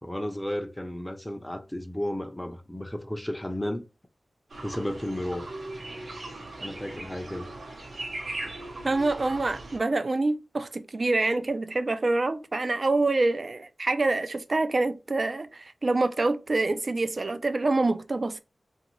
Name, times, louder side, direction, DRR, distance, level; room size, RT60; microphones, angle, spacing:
voice 1, 0.0-3.9 4.6-5.4 6.6-7.5, left 1 dB, 10° left, 0.5 m, -33 dB
sound 1, 4.5-9.8, right 2 dB, 70° right, 0.9 m, -39 dB
voice 2, 8.8-18.4, right 2 dB, 45° right, 0.3 m, -26 dB
2.7 x 2.6 x 3.0 m
wide cardioid pair, 80°, 0 cm